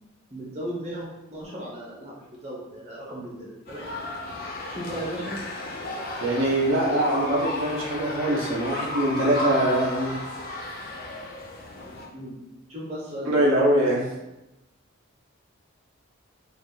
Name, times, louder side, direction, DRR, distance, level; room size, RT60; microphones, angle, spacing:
voice 1, 0.3-3.9 4.7-5.4 6.6-7.1 12.1-12.4 12.7-13.4, equal, 30° right, -5 dB, 0.7 m, -36 dB
sound 1, 3.7-12.1, left 2 dB, 40° left, 0.3 m, -33 dB
voice 2, 6.2-10.2 13.2-14.0, right 1 dB, 70° right, -3 dB, 0.5 m, -23 dB
2.3 x 2.1 x 3.1 m, 0.97 s
head